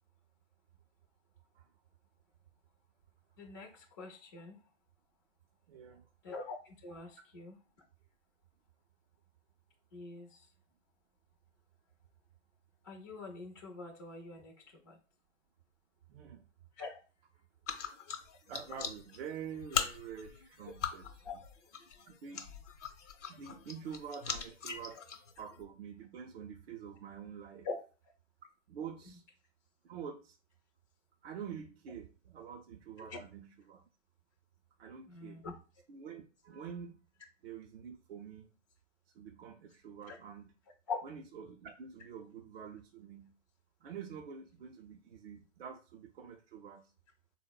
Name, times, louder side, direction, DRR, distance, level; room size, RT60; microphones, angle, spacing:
voice 1, 3.4-4.6 6.2-7.6 9.9-10.3 12.8-14.5 14.8-15.0 16.8-17.0 21.2-21.3 27.6-27.7 33.1-33.2 35.1-35.5 40.1-40.2 40.9-41.0, left 4 dB, 25° left, -2 dB, 0.3 m, -43 dB
voice 2, 5.7-6.1 16.1-16.5 18.5-21.4 22.2-22.5 23.3-25.0 25.4-27.7 28.7-29.2 29.8-30.4 31.2-33.9 34.8-35.4 35.9-37.0 37.4-38.5 39.1-40.5 41.0-43.3 43.8-46.9, right 7 dB, 55° right, 3 dB, 0.5 m, -47 dB
sound 1, 17.7-25.6, left 7 dB, 70° left, 0.7 m, -41 dB
3.8 x 2.0 x 2.2 m, 0.35 s
hypercardioid pair, 130°, 37 cm